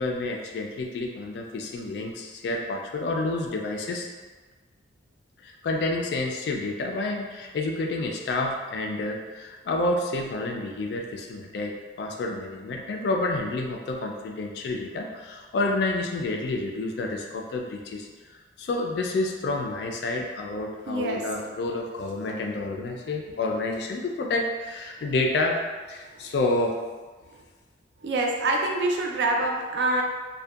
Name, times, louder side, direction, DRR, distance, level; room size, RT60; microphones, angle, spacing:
voice 1, 0.0-4.1 5.4-18.1 18.6-25.6 25.9-26.9, left 2 dB, 65° left, 1 dB, 0.3 m, -29 dB
voice 2, 20.9-21.2 28.0-30.0, right 2 dB, 70° right, 0 dB, 0.4 m, -25 dB
2.6 x 2.1 x 2.3 m, 1.3 s
head